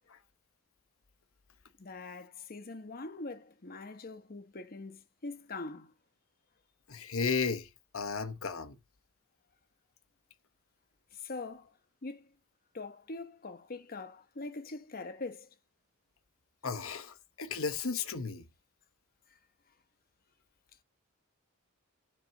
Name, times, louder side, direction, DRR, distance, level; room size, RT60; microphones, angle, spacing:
voice 1, 1.8-5.9 11.1-12.3 12.7-15.5 19.3-19.4, left 3 dB, 45° left, 1.0 m, -43 dB
voice 2, 6.9-8.8 16.6-18.4, left 5 dB, 70° left, 1.1 m, -34 dB
11.0 x 4.4 x 6.4 m
head